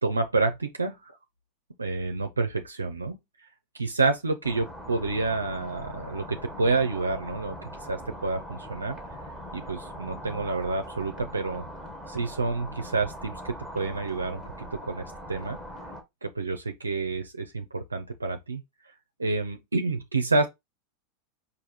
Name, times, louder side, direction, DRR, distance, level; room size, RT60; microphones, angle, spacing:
voice 1, 0.0-1.0 1.8-3.2 3.7-7.5 7.8-9.0 9.5-11.6 12.1-15.6 16.2-18.6 19.2-20.5, right 3 dB, 90° right, 0.6 m, -28 dB
sound 1, 4.4-16.0, equal, ahead, 1.4 m, -41 dB
4.8 x 2.6 x 4.1 m
figure-of-eight pair, 90°, 0 cm